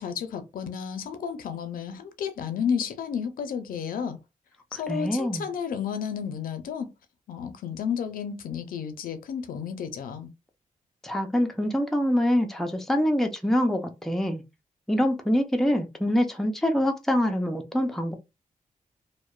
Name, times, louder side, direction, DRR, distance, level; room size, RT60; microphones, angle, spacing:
voice 1, 0.0-4.2 4.7-6.9 7.3-10.3, left 7 dB, 90° left, 0.4 m, -32 dB
voice 2, 4.7-5.5 11.0-14.4 14.9-18.1, equal, ahead, 0.4 m, -25 dB
2.8 x 2.1 x 2.3 m
wide cardioid pair, 110°, 14 cm